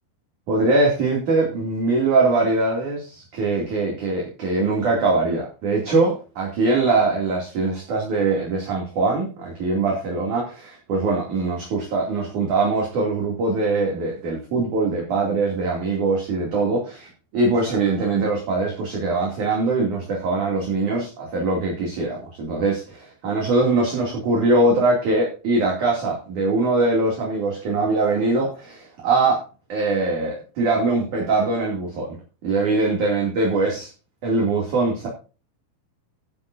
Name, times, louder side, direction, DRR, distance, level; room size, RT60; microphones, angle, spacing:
voice 1, 0.5-29.4 29.7-32.1 32.4-33.9 34.2-35.1, right 3 dB, 45° right, -2 dB, 3.6 m, -22 dB
13.5 x 11.5 x 2.7 m, 0.35 s
omnidirectional pair, 5.8 m